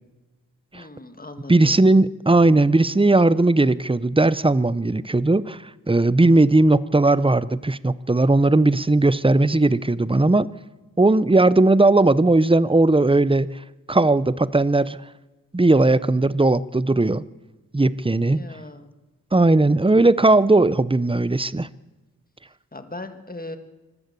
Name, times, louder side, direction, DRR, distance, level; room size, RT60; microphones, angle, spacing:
voice 1, 0.7-1.8 18.3-18.9 22.7-23.6, left 2 dB, 25° left, 8 dB, 1.9 m, -38 dB
voice 2, 1.5-5.6 5.9-10.5 11.0-13.5 13.9-15.0 15.5-17.2 17.7-18.4 19.3-21.7, right 2 dB, 15° right, 17 dB, 0.7 m, -18 dB
25.0 x 14.0 x 8.2 m, 1.1 s
wide cardioid pair, 85°, 34 cm